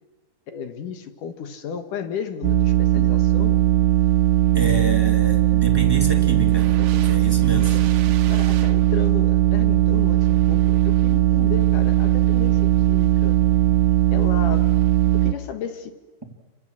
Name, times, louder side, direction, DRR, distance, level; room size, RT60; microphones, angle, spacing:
voice 1, 0.5-3.6 6.8-7.8 8.3-13.4 14.1-14.8 15.1-15.9, left 7 dB, 60° left, 8 dB, 2.5 m, -34 dB
sound 1, 2.4-15.3, right 13 dB, 85° right, 3.4 m, -18 dB
voice 2, 4.5-6.8 7.1-7.8, right 2 dB, 10° right, 2 dB, 1.7 m, -28 dB
30.0 x 25.0 x 7.5 m, 1.2 s
omnidirectional pair, 4.8 m